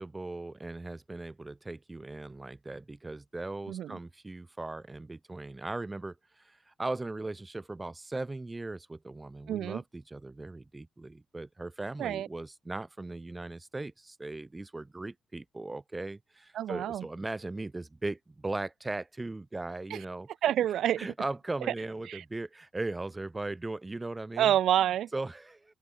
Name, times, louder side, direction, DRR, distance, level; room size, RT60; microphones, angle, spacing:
voice 1, 0.0-20.3 21.0-24.6 25.1-25.7, right 2 dB, 15° right, 3.1 m, -38 dB
voice 2, 3.7-4.0 9.5-9.8 12.0-12.3 16.5-17.1 19.9-20.0 20.4-21.0 22.1-22.2 24.4-25.1, right 11 dB, 75° right, 3.2 m, -28 dB
open air
cardioid pair, 90°, 0 cm